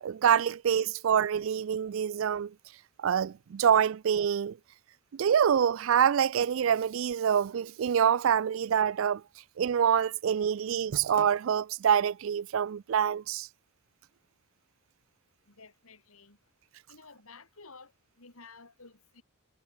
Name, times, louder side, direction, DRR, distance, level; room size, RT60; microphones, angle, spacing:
voice 1, 0.0-2.5 3.0-4.6 5.1-9.2 9.6-13.5, right 8 dB, 60° right, 0.3 m, -26 dB
voice 2, 15.5-16.4 16.9-17.9 18.2-19.2, left 4 dB, 75° left, 3.1 m, -52 dB
head